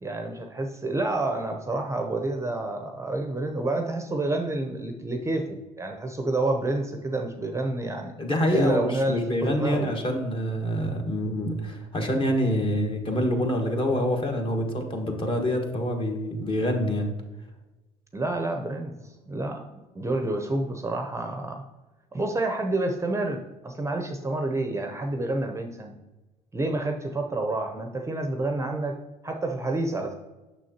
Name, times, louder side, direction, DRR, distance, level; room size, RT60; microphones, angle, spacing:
voice 1, 0.0-8.1 8.5-9.9 18.1-21.6 22.1-25.9 26.5-29.0 29.2-30.1, right 2 dB, 15° right, 4 dB, 0.7 m, -29 dB
voice 2, 8.2-17.1, equal, 30° left, 2 dB, 1.4 m, -26 dB
6.3 x 6.3 x 2.8 m, 1.1 s
supercardioid pair, 90°, 17 cm